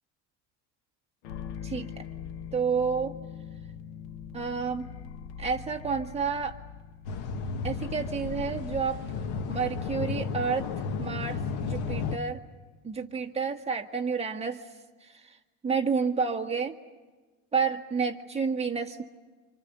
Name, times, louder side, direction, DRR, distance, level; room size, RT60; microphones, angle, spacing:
sound 1, 1.2-12.6, left 8 dB, 85° left, 1.2 m, -44 dB
voice 1, 1.6-2.1 2.5-3.1 4.3-4.9 5.4-6.6 7.6-9.0 9.5-10.7 11.0-12.4 12.8-14.7 15.0-15.4 15.6-16.8 17.5-19.0, right 5 dB, 15° right, 2 dB, 1.6 m, -30 dB
sound 2, 7.0-12.2, left 5 dB, 65° left, 1.5 m, -33 dB
28.5 x 27.0 x 6.8 m, 1.3 s
cardioid pair, 155°, 39 cm